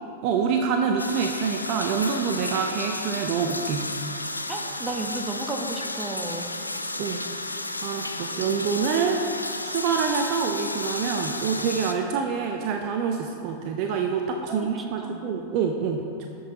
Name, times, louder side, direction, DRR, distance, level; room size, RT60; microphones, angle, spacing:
voice 1, 0.2-3.9 7.0-7.2 7.8-9.3 9.6-16.3, right 6 dB, 45° right, 4 dB, 0.6 m, -26 dB
sound 1, 1.0-11.9, left 2 dB, 85° left, 0.4 m, -32 dB
voice 2, 4.5-6.5 14.5-15.2, right 2 dB, 15° right, 3 dB, 0.9 m, -33 dB
13.5 x 5.5 x 3.9 m, 2.5 s
figure-of-eight pair, 90°, 0 cm